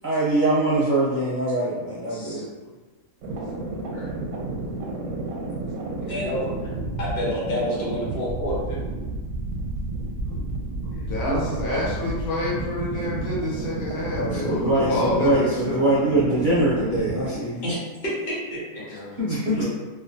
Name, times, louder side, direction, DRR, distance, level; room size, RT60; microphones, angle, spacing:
voice 1, 0.0-2.5 11.2-11.9 14.1-17.6 19.2-19.7, right 1 dB, 55° right, -9 dB, 0.5 m, -23 dB
voice 2, 2.1-2.4 3.9-4.1 6.0-6.6 7.0-8.8 17.6-18.6 18.9-19.1 19.5-19.7, equal, 40° left, -7 dB, 0.9 m, -29 dB
sound 1, 3.2-17.3, right 2 dB, 85° right, 1.1 m, -31 dB
voice 3, 11.0-15.9 18.9-19.1, left 1 dB, 90° left, -6 dB, 1.4 m, -28 dB
2.9 x 2.2 x 2.6 m, 1.3 s
omnidirectional pair, 1.5 m